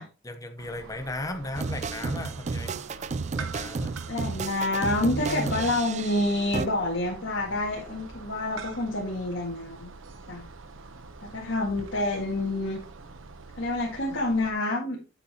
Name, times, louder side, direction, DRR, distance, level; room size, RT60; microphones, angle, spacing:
voice 1, 0.0-2.8 3.3-4.0 5.1-5.7, left 1 dB, 15° left, 0.9 m, -36 dB
sound 1, 0.6-14.5, right 4 dB, 80° right, 0.9 m, -45 dB
sound 2, 1.5-6.7, right 4 dB, 35° right, 0.4 m, -32 dB
voice 2, 4.1-9.9 10.3-10.4 11.2-12.8 13.6-15.0, left 2 dB, 65° left, 2.0 m, -28 dB
8.8 x 8.2 x 2.9 m
head